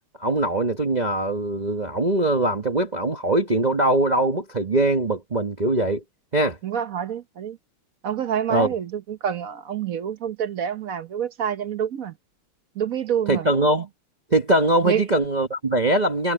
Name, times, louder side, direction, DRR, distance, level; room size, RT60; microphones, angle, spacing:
voice 1, 0.2-6.0 6.3-6.6 8.5-8.7 13.3-13.9 14.3-16.3, right 1 dB, 30° right, 0.9 m, -22 dB
voice 2, 6.6-7.6 8.0-12.2 12.7-13.5 14.8-15.1, right 8 dB, 50° right, 1.1 m, -27 dB
omnidirectional pair, 2.3 m